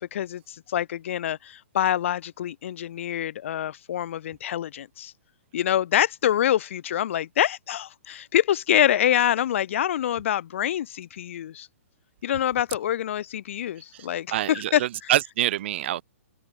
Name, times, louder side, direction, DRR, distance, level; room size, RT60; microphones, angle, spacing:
voice 1, 0.1-5.1 5.5-11.7 12.2-14.8, left 11 dB, 60° left, 2.8 m, -25 dB
voice 2, 13.9-16.0, right 13 dB, 50° right, 0.9 m, -26 dB
hypercardioid pair, 155°, 8 cm